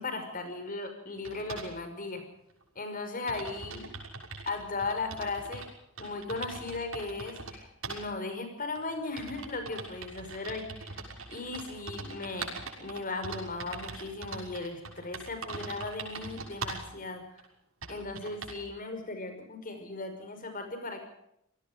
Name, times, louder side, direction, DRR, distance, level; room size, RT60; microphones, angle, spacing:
voice 1, 0.0-2.2 2.8-3.9 4.5-5.6 6.0-11.0 11.3-17.4 17.9-21.0, left 3 dB, 40° left, 7 dB, 5.6 m, -37 dB
sound 1, 1.2-1.7 2.6-2.7 2.9-3.0 3.3-5.7 6.0-7.5 7.8-8.0 8.7-16.9 17.4-17.5 17.8-18.6, right 4 dB, 75° right, 6.3 m, -42 dB
27.5 x 18.5 x 5.2 m, 0.78 s
head